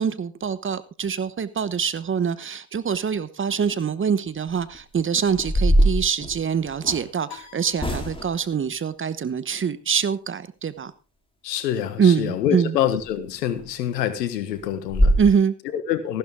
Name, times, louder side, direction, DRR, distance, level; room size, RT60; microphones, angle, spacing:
voice 1, 0.0-10.9 12.0-12.8 15.2-15.5, right 7 dB, 25° right, 1.0 m, -24 dB
sound 1, 4.7-4.8 5.3-7.1 7.8-8.4 13.0-13.1 13.5-13.6 14.0-14.1 14.5-14.6 14.9-15.2, right 1 dB, 10° left, 3.4 m, -22 dB
sound 2, 7.3-8.7, left 10 dB, 55° left, 2.7 m, -47 dB
voice 2, 11.4-15.2 15.7-16.2, left 10 dB, 90° left, 1.6 m, -26 dB
15.0 x 11.5 x 3.6 m
hypercardioid pair, 80°, 48 cm